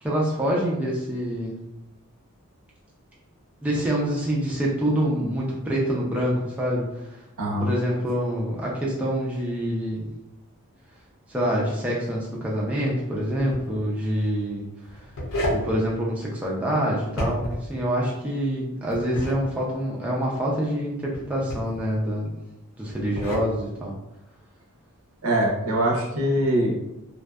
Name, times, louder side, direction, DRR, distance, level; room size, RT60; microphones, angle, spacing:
voice 1, 0.0-1.6 3.6-7.2 7.6-10.0 11.3-14.6 15.5-22.3 22.8-23.9, equal, 5° right, -5 dB, 0.3 m, -26 dB
voice 2, 7.4-7.7 25.2-26.8, right 1 dB, 65° right, -1 dB, 0.6 m, -23 dB
sound 1, 13.4-13.6 14.8-15.7 17.1-17.7 18.9-19.4 21.1-21.8 22.9-23.5, equal, 65° left, 0.7 m, -29 dB
2.5 x 2.2 x 2.2 m, 0.91 s
head